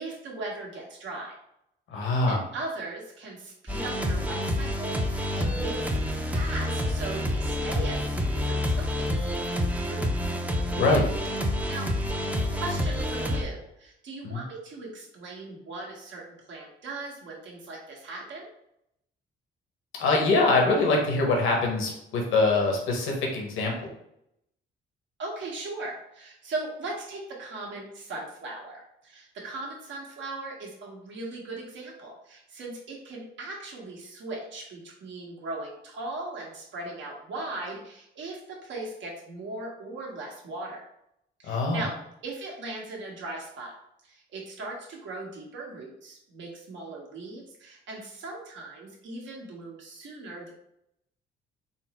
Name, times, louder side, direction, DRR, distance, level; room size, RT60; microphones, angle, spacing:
voice 1, 0.0-1.3 2.3-9.2 9.6-10.3 11.7-11.9 12.5-18.5 25.2-40.8 41.4-41.9 42.2-43.7 44.0-50.5, right 2 dB, 70° right, -3 dB, 1.3 m, -38 dB
voice 2, 1.9-2.4 10.8-11.0 14.2-14.4 20.0-23.7 41.5-41.8, left 3 dB, 85° left, 0 dB, 1.0 m, -23 dB
sound 1, 3.7-13.4, left 1 dB, 5° right, 0.5 m, -28 dB
4.1 x 2.0 x 4.3 m, 0.78 s
cardioid pair, 90°, 20 cm